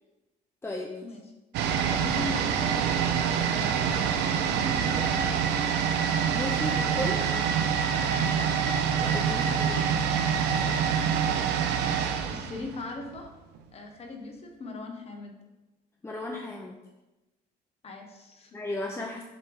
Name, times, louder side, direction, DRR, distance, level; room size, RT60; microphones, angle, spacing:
voice 1, 0.6-1.1 6.3-7.3 9.0-9.9 10.5-11.5 16.0-16.8 18.5-19.2, left 1 dB, 15° left, 1 dB, 0.6 m, -36 dB
sound 1, 1.5-13.3 13.6-13.7, right 7 dB, 85° right, 0.7 m, -26 dB
voice 2, 2.0-2.8 3.5-5.4 8.1-8.4 12.2-13.3 13.7-15.3 17.8-18.6, left 2 dB, 35° left, 2 dB, 1.3 m, -40 dB
7.5 x 3.4 x 4.9 m, 1.0 s
cardioid pair, 110°, 17 cm